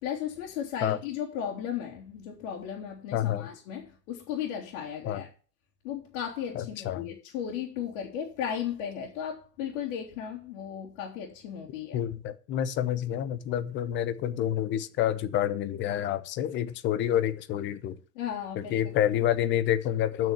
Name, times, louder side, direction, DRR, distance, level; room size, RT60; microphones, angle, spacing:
voice 1, 0.0-5.3 5.8-12.0 18.1-19.0, left 9 dB, 55° left, 3.1 m, -35 dB
voice 2, 3.1-3.5 5.1-5.2 6.5-7.1 11.9-18.0 18.6-20.3, left 11 dB, 25° left, 0.7 m, -28 dB
8.8 x 6.3 x 7.1 m
hypercardioid pair, 120°, 50 cm